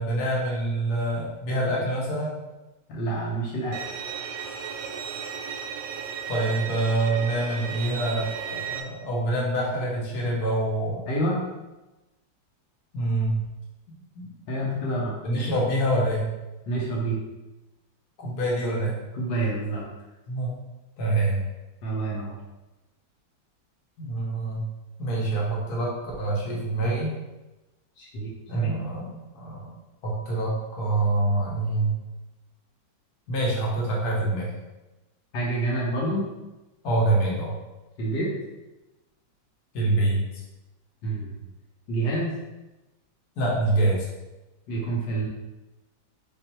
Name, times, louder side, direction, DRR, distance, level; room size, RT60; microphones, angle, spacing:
voice 1, 0.0-2.3 6.3-11.0 12.9-13.3 14.1-14.3 15.2-16.3 18.2-19.0 20.3-20.5 21.0-21.4 24.0-24.6 25.0-27.1 28.5-29.7 30.0-31.9 33.3-34.5 36.8-37.5 39.7-40.2 43.4-44.1, right 2 dB, 60° left, -3 dB, 1.5 m, -26 dB
voice 2, 2.9-3.8 11.1-11.4 14.5-15.1 16.7-17.2 19.1-19.8 21.8-22.4 28.0-28.7 35.3-36.3 38.0-38.3 41.0-41.4 41.9-42.3 44.7-45.3, right 2 dB, 80° left, -4 dB, 1.6 m, -27 dB
Bowed string instrument, 3.7-8.8, right 7 dB, 75° right, 1.0 m, -34 dB
3.7 x 3.2 x 4.3 m, 1.0 s
omnidirectional pair, 2.0 m